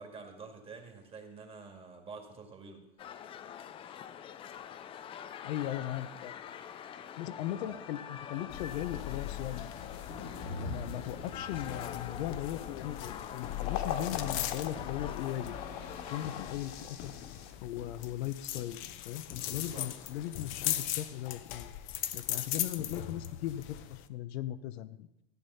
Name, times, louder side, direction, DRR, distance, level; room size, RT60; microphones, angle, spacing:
voice 1, 0.0-2.9 7.6-7.8 19.3-19.9, right 4 dB, 20° right, 3 dB, 2.0 m, -48 dB
sound 1, 3.0-16.6, left 9 dB, 20° left, 0.3 m, -45 dB
voice 2, 5.4-6.3 7.2-10.0 10.6-17.1 17.6-18.8 19.0-21.7 22.1-25.1, left 12 dB, 80° left, 12 dB, 0.9 m, -38 dB
sound 2, 8.5-24.1, left 13 dB, 40° left, 0.7 m, -40 dB
sound 3, 10.1-17.5, left 6 dB, 55° left, 1.7 m, -42 dB
14.5 x 8.9 x 5.6 m, 0.86 s
supercardioid pair, 150°, 31 cm